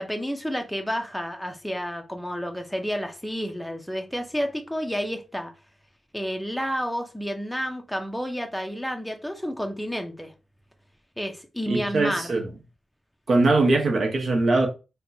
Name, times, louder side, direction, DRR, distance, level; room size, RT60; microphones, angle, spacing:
voice 1, 0.0-5.5 6.1-10.3 11.2-12.3, equal, ahead, 0.5 m, -30 dB
voice 2, 11.7-12.5 13.3-14.7, right 2 dB, 60° right, 0.9 m, -21 dB
4.3 x 2.2 x 2.6 m
wide cardioid pair, 135°, 0 cm